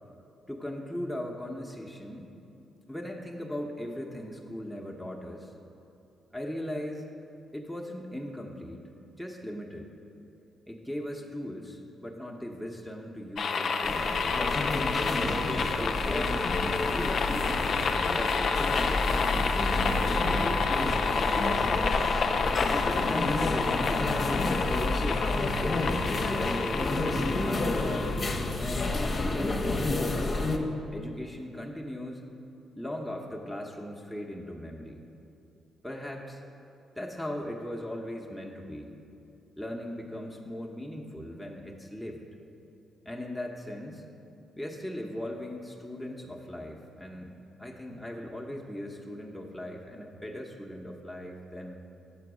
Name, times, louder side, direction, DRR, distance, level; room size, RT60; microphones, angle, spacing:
voice 1, 0.5-2.3 2.9-5.5 6.3-7.1 7.5-9.9 10.7-14.1 15.0-16.5 16.8-19.6 20.3-21.0 21.3-22.0 22.7-25.5 26.1-27.0 27.4-28.2 28.6-30.4 30.9-32.3 32.8-35.1 35.8-36.4 36.9-39.0 39.6-42.2 43.0-44.1 44.6-47.3 47.6-51.9, left 1 dB, ahead, -2 dB, 0.8 m, -38 dB
sound 1, 13.4-28.5, left 5 dB, 60° left, 0.4 m, -29 dB
sound 2, 13.8-30.6, left 2 dB, 45° left, 0.8 m, -30 dB
6.9 x 4.4 x 6.1 m, 2.8 s
supercardioid pair, 50°, 0 cm